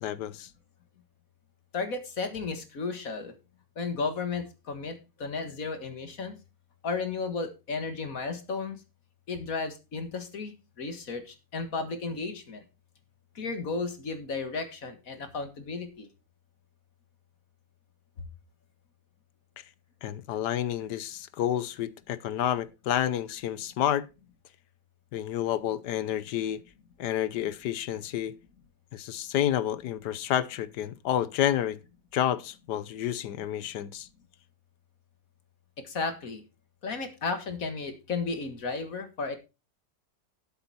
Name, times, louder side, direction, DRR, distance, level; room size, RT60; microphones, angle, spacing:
voice 1, 0.0-0.5 19.6-19.7 20.0-24.1 25.1-26.6 27.0-28.3 28.9-31.8 32.1-34.1, left 11 dB, 80° left, 1.3 m, -29 dB
voice 2, 1.7-3.3 3.8-6.4 6.8-8.8 9.3-12.6 13.4-16.1 35.8-36.4 36.8-39.4, left 4 dB, 55° left, 2.0 m, -34 dB
12.0 x 7.8 x 4.1 m
omnidirectional pair, 1.8 m